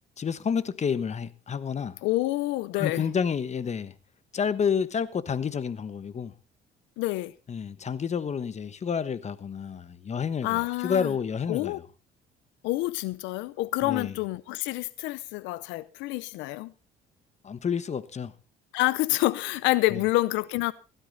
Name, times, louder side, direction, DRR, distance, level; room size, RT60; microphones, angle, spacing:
voice 1, 0.2-2.0 2.8-3.9 4.3-6.3 7.5-11.8 13.8-14.1 17.4-18.3 19.9-20.0, left 6 dB, 35° left, 1.2 m, -29 dB
voice 2, 2.0-3.1 7.0-7.3 10.4-11.1 11.5-11.8 12.6-16.7 18.7-20.7, left 18 dB, 90° left, 0.6 m, -27 dB
16.0 x 13.0 x 4.0 m
cardioid pair, 90°, 19 cm